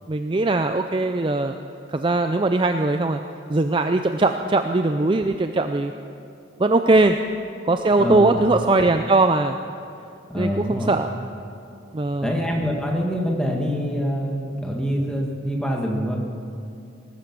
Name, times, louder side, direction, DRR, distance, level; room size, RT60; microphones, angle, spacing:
voice 1, 0.1-1.6 1.9-3.2 3.5-5.9 6.6-7.2 7.6-9.6 10.3-11.1 11.9-12.3, right 2 dB, 25° right, 7 dB, 0.4 m, -20 dB
voice 2, 8.0-8.4 10.3-11.0 12.2-16.2, equal, 5° left, -1 dB, 1.7 m, -25 dB
19.0 x 12.5 x 6.1 m, 2.5 s
head